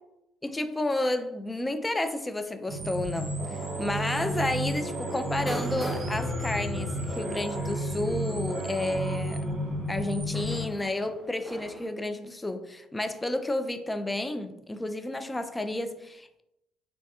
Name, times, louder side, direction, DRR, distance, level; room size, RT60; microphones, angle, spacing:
voice 1, 0.4-9.5 9.9-16.4, left 1 dB, 15° left, 0.3 m, -31 dB
sound 1, 2.7-11.9, right 1 dB, 15° right, 0.7 m, -43 dB
sound 2, 2.7-10.6, right 1 dB, 35° right, 1.0 m, -32 dB
3.1 x 3.1 x 2.8 m
figure-of-eight pair, 50°, 0 cm